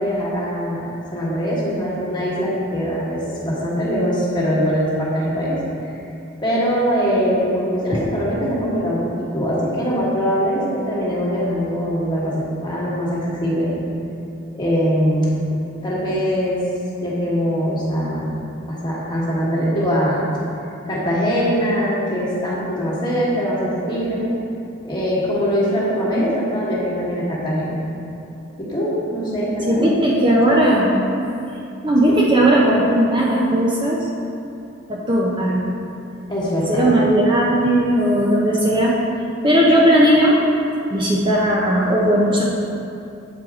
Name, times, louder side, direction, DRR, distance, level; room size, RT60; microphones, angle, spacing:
voice 1, 0.0-5.5 6.4-13.7 14.5-15.4 15.8-16.6 17.0-18.3 18.7-20.2 20.9-24.3 24.8-27.8 28.6-29.9 32.1-32.2 36.3-37.0, equal, 25° left, -7 dB, 1.4 m, -22 dB
voice 2, 29.7-31.0 31.8-34.0 34.9-35.6 36.7-38.9 39.4-40.4 40.9-42.4, right 1 dB, 25° right, -5 dB, 0.6 m, -17 dB
7.7 x 4.6 x 3.6 m, 2.6 s
head